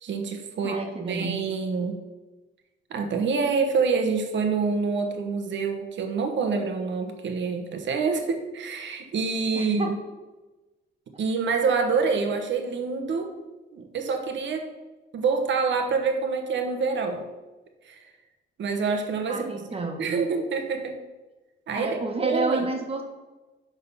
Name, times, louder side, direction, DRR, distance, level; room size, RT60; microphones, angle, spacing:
voice 1, 0.0-0.8 1.1-2.0 2.9-10.0 11.2-13.3 13.7-14.7 15.1-17.3 17.8-18.0 18.6-19.5 20.0-21.0 21.7-22.7, right 5 dB, 70° right, 5 dB, 1.3 m, -26 dB
voice 2, 0.6-1.4 9.5-9.9 19.3-20.2 21.7-23.0, right 3 dB, 30° right, 2 dB, 1.7 m, -30 dB
11.0 x 3.9 x 5.7 m, 1.1 s
cardioid pair, 100°, 20 cm